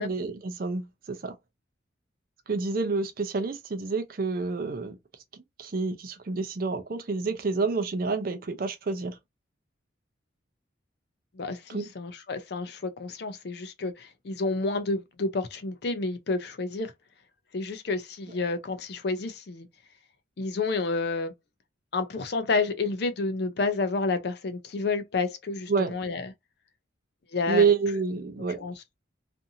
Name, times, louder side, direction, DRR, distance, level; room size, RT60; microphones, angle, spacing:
voice 1, 0.0-1.3 2.5-5.0 5.3-9.2 11.7-11.9 25.7-26.0 27.5-28.6, right 4 dB, 50° right, 0.5 m, -28 dB
voice 2, 11.4-16.9 17.5-19.7 20.4-21.3 21.9-26.3 27.3-27.7 28.6-28.8, left 3 dB, 55° left, 0.5 m, -30 dB
2.6 x 2.5 x 2.7 m
head